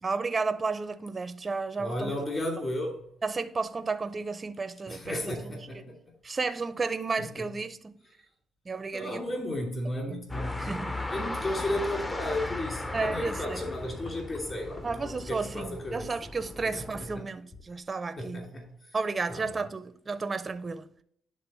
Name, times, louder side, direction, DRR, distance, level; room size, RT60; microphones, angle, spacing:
voice 1, 0.0-2.1 3.2-5.2 5.4-5.5 6.2-7.9 8.7-9.2 10.1-10.2 10.6-11.1 12.9-13.6 14.8-18.5 18.9-20.9, right 4 dB, 30° right, 0.4 m, -32 dB
voice 2, 1.8-2.9 4.9-5.9 7.2-7.4 8.9-10.7 11.1-16.1 16.6-16.8 17.1-17.2 18.2-18.9 19.3-19.6, left 1 dB, 35° left, 2.6 m, -34 dB
sound 1, 10.3-17.2, left 2 dB, 20° left, 0.5 m, -37 dB
Gurgling / Sink (filling or washing), 13.0-17.5, left 3 dB, 65° left, 1.3 m, -50 dB
10.5 x 3.6 x 4.3 m
cardioid pair, 90°, 0 cm